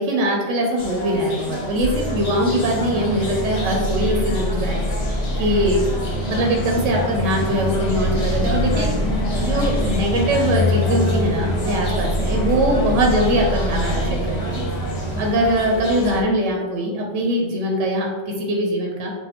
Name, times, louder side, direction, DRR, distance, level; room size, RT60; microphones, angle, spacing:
voice 1, 0.0-4.8 5.4-5.8 6.3-8.9 9.4-14.6 15.2-19.1, equal, 80° right, 0 dB, 0.9 m, -22 dB
sound 1, 0.8-16.2, left 1 dB, 40° left, 0.7 m, -27 dB
sound 2, 1.8-15.3, equal, 30° right, 0.8 m, -26 dB
2.8 x 2.2 x 4.1 m, 1.2 s
omnidirectional pair, 1.2 m